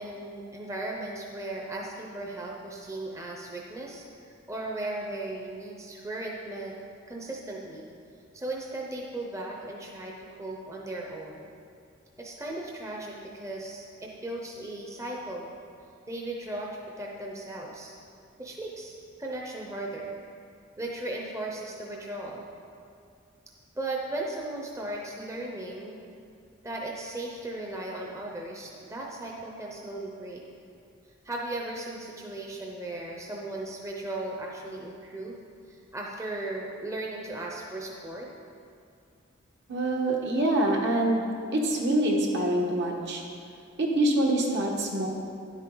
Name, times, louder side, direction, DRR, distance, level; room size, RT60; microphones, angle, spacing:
voice 1, 0.0-6.7 7.1-7.9 8.3-11.5 12.2-15.5 16.1-16.7 17.0-17.9 18.4-20.2 20.8-22.5 23.8-26.0 26.6-30.4 31.2-35.4 35.7-38.3, right 2 dB, 15° right, -2 dB, 0.7 m, -37 dB
voice 2, 39.7-41.2 41.5-43.2 43.8-45.1, right 1 dB, 60° right, 0 dB, 1.3 m, -25 dB
10.0 x 8.2 x 3.9 m, 2.4 s
head